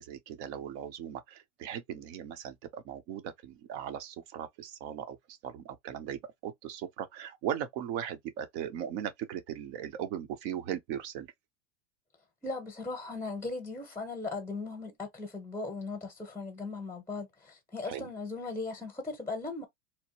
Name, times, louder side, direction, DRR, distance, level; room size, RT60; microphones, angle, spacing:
voice 1, 0.0-11.3 17.9-18.1, right 9 dB, 60° right, 0.8 m, -38 dB
voice 2, 12.4-19.6, left 3 dB, 5° left, 0.8 m, -38 dB
2.9 x 2.1 x 2.9 m
hypercardioid pair, 110°, 39 cm